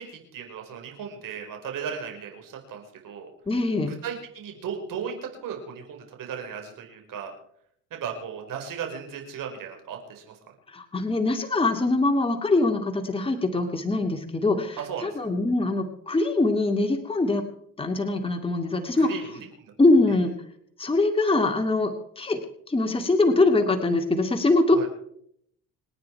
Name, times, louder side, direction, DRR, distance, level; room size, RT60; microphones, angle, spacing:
voice 1, 0.0-3.3 3.9-7.3 7.9-10.3 14.8-15.3 19.0-19.2 19.6-19.7 20.1-20.3 24.7-24.9, right 7 dB, 65° right, 3 dB, 4.9 m, -36 dB
voice 2, 3.5-3.9 10.7-14.8 15.0-17.4 17.8-19.1 19.8-20.3 20.8-22.4 22.7-24.9, left 2 dB, 15° left, 3 dB, 2.2 m, -23 dB
27.5 x 9.7 x 4.6 m, 0.70 s
cardioid pair, 95°, 35 cm